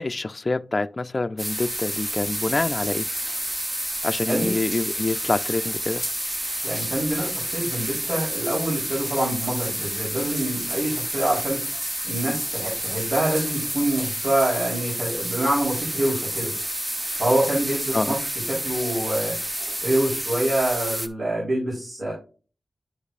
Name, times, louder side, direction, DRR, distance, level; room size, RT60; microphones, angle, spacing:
voice 1, 0.0-3.1 4.0-6.0 17.9-18.2, left 3 dB, 40° left, 0.4 m, -26 dB
sound 1, 1.4-21.1, right 1 dB, 15° right, 0.9 m, -29 dB
voice 2, 6.6-11.6 12.0-16.5 17.2-19.4 19.8-22.1, right 1 dB, 55° right, 3.7 m, -26 dB
11.0 x 5.1 x 2.5 m
wide cardioid pair, 75°, 0 cm